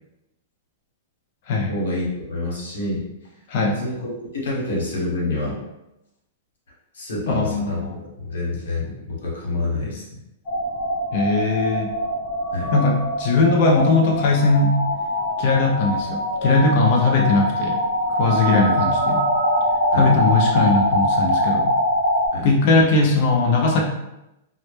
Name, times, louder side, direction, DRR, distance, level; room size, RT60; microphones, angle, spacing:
voice 1, 1.7-3.0 3.6-5.6 6.9-10.0 12.5-12.7 19.9-20.1 22.3-22.5, left 2 dB, 90° left, -3 dB, 0.9 m, -27 dB
voice 2, 3.5-3.8 7.3-7.9 11.1-11.9 12.7-14.8 15.4-17.8 18.1-19.2 19.9-21.8 22.4-23.8, left 3 dB, 40° left, 0 dB, 0.4 m, -19 dB
sound 1, 10.5-22.3, equal, 25° left, 0.8 m, -23 dB
2.0 x 2.0 x 3.0 m, 0.90 s
supercardioid pair, 175°, 0 cm